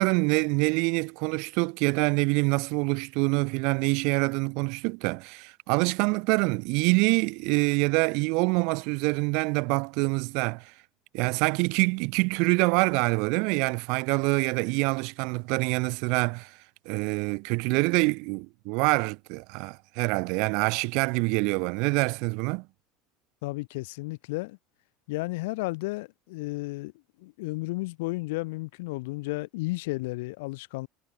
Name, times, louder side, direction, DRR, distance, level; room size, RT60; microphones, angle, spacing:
voice 1, 0.0-10.7 11.1-16.5 16.9-22.6, right 31 dB, 65° right, 2.1 m, -25 dB
voice 2, 23.4-24.6 25.1-26.9 27.2-30.9, left 23 dB, 85° left, 5.1 m, -33 dB
cardioid pair, 145°, 0 cm